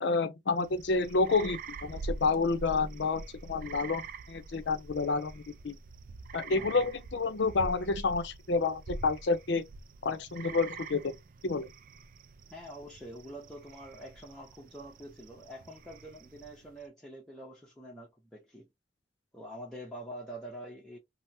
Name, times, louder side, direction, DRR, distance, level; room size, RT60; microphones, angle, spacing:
voice 1, 0.0-5.8 6.3-9.6 10.0-11.1 11.4-11.7, left 4 dB, 70° left, 0.5 m, -29 dB
sound 1, 0.6-16.8, right 3 dB, 45° right, 0.3 m, -45 dB
voice 2, 6.5-6.9 12.5-18.7 19.3-21.0, right 1 dB, 5° left, 0.6 m, -46 dB
3.3 x 2.0 x 2.6 m
head